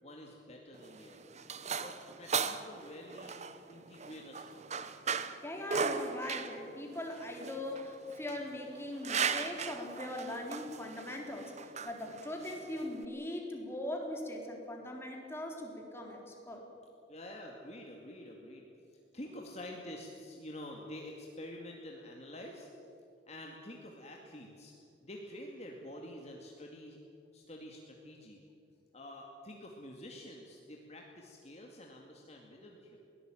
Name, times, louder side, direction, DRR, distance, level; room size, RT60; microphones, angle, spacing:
voice 1, 0.0-1.4 1.8-5.0 17.1-18.7 19.1-22.7 23.3-24.7 25.0-27.0 27.3-28.4 28.9-33.0, left 1 dB, 35° left, 0 dB, 2.2 m, -48 dB
sound 1, 0.7-13.1, right 6 dB, 40° right, 1.0 m, -38 dB
voice 2, 5.4-16.6, left 1 dB, 15° left, 0 dB, 3.8 m, -40 dB
22.0 x 18.0 x 9.1 m, 2.7 s
head